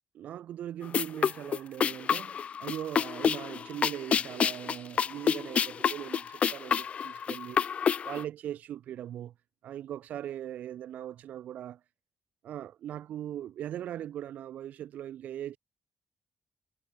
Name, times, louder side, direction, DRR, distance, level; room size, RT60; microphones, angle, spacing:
voice 1, 0.1-7.6 8.0-9.3 9.6-11.8 12.4-15.6, right 11 dB, 80° right, 1.0 m, -40 dB
sound 1, 0.8-8.2, left 7 dB, 50° left, 0.4 m, -28 dB
cardioid pair, 85°, 3 cm